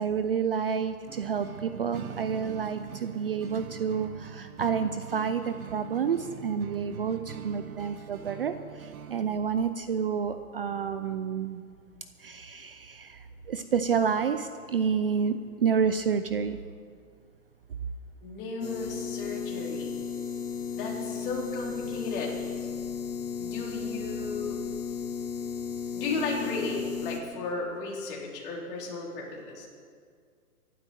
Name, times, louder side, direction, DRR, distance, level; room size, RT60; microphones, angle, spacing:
voice 1, 0.0-11.6 12.2-16.6, right 6 dB, 40° right, 10 dB, 0.5 m, -29 dB
sound 1, 1.1-9.3, right 9 dB, 65° right, 1.1 m, -42 dB
voice 2, 18.2-20.0 20.7-22.6 23.4-24.6 25.9-29.7, left 3 dB, 35° left, -3 dB, 4.1 m, -35 dB
sound 2, 18.6-27.2, left 6 dB, 85° left, 2.6 m, -34 dB
23.0 x 12.0 x 4.5 m, 2.1 s
hypercardioid pair, 150°, 46 cm